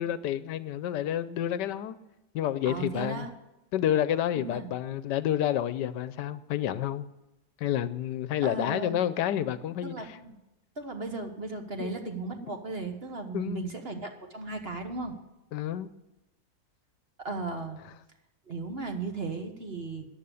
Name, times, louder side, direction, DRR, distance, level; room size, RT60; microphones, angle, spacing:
voice 1, 0.0-2.0 2.3-3.3 3.7-7.1 7.6-10.2 11.8-11.9 13.3-13.7 15.5-15.9, left 11 dB, 80° left, 15 dB, 1.2 m, -29 dB
voice 2, 2.6-3.3 4.3-4.7 8.4-9.0 9.8-10.3 10.8-15.2 17.2-17.8 18.5-20.1, right 3 dB, 40° right, 5 dB, 1.2 m, -36 dB
14.5 x 9.7 x 7.0 m, 0.97 s
omnidirectional pair, 1.9 m